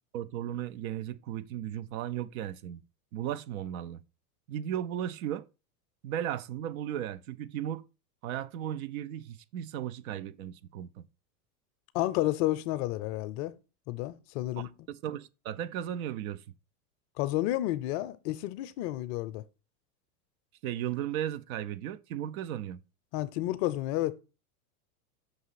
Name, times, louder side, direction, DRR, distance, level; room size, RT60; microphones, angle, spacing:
voice 1, 0.1-2.8 3.1-4.0 4.5-5.5 6.0-7.9 8.2-11.1 14.9-16.4 20.6-22.8, right 11 dB, 65° right, 0.6 m, -35 dB
voice 2, 11.9-13.5 13.9-14.9 17.2-19.4 23.1-24.2, left 15 dB, 45° left, 0.6 m, -31 dB
6.1 x 2.9 x 5.6 m
supercardioid pair, 120°, 45 cm